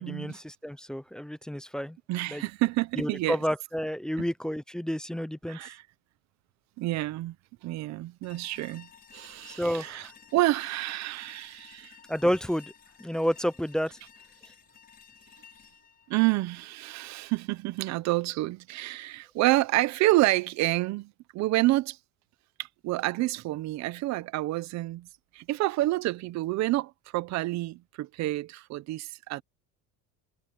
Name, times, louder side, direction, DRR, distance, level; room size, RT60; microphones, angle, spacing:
voice 1, 0.0-2.0 2.3-2.4 3.0-5.6 9.5-10.1 12.1-12.7 13.0-14.0, equal, ahead, 0.4 m, -30 dB
voice 2, 2.1-3.4 5.5-5.8 6.8-7.4 7.6-12.0 16.1-22.0 22.6-25.1 25.3-29.4, right 18 dB, 45° right, 0.7 m, -28 dB
sound 1, 8.2-17.3, left 7 dB, 25° left, 4.8 m, -54 dB
cardioid pair, 170°, 38 cm